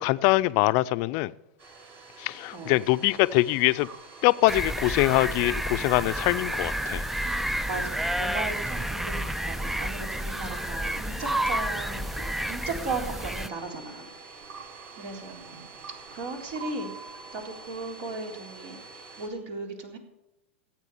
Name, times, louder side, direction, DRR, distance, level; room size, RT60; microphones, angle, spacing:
voice 1, 0.0-1.3 2.2-3.9 4.2-7.0, left 19 dB, 50° left, 0.5 m, -23 dB
Domestic sounds home sounds, 1.6-19.3, right 3 dB, 40° right, 3.7 m, -48 dB
sound 1, 3.1-17.9, right 5 dB, 75° right, 1.7 m, -49 dB
sound 2, 4.5-13.5, right 1 dB, 5° right, 0.4 m, -30 dB
voice 2, 7.1-14.1 14.5-15.6 16.1-16.9 17.3-20.0, right 3 dB, 60° right, 3.8 m, -37 dB
15.5 x 9.0 x 7.0 m
hypercardioid pair, 115°, 7 cm